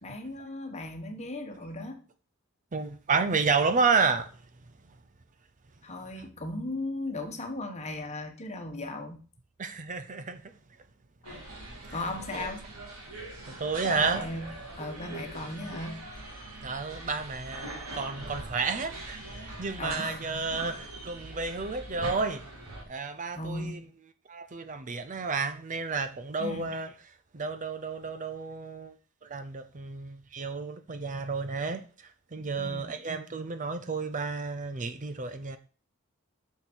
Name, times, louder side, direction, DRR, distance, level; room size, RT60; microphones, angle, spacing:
voice 1, 0.0-2.0 5.8-9.2 11.2-11.4 11.9-12.7 13.8-14.5 14.8-16.0 19.8-20.4 23.3-23.9 26.4-26.7 32.6-32.9, left 2 dB, 30° left, 1.3 m, -37 dB
voice 2, 2.7-4.4 9.6-10.5 11.8-12.0 12.3-12.5 13.5-14.3 16.6-22.5 22.9-23.8 24.3-26.9 27.3-28.9 29.2-35.6, right 4 dB, 35° right, 0.6 m, -31 dB
sound 1, 11.2-22.8, right 2 dB, 75° right, 3.3 m, -42 dB
6.9 x 6.5 x 6.3 m
head